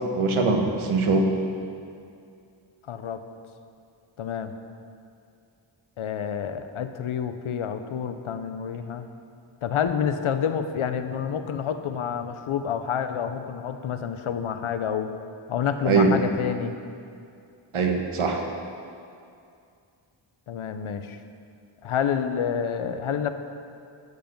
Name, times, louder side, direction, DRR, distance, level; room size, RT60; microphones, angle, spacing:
voice 1, 0.1-1.3 15.8-16.1 17.7-18.4, right 4 dB, 75° right, 3 dB, 1.4 m, -22 dB
voice 2, 2.9-3.2 4.2-4.5 6.0-9.1 9.6-15.1 15.5-16.8 20.5-21.2 21.8-23.3, left 8 dB, 75° left, 9 dB, 0.8 m, -28 dB
13.0 x 7.1 x 5.3 m, 2.5 s
wide cardioid pair, 155°, 49 cm